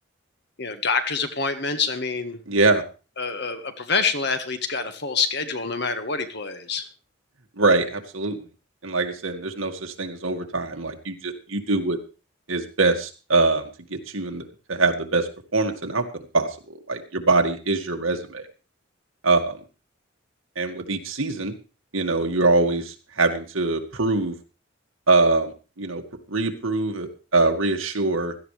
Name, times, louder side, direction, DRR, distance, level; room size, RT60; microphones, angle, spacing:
voice 1, 0.6-2.4 3.2-6.9, left 4 dB, 55° left, 8 dB, 1.6 m, -26 dB
voice 2, 2.5-2.8 7.6-8.4 8.8-12.0 12.5-13.6 13.9-14.4 14.7-16.0 16.3-18.4 19.2-19.6 20.6-21.5 21.9-24.4 25.1-26.0 26.3-28.3, right 3 dB, 85° right, 4 dB, 2.0 m, -23 dB
16.5 x 13.0 x 3.3 m, 0.34 s
head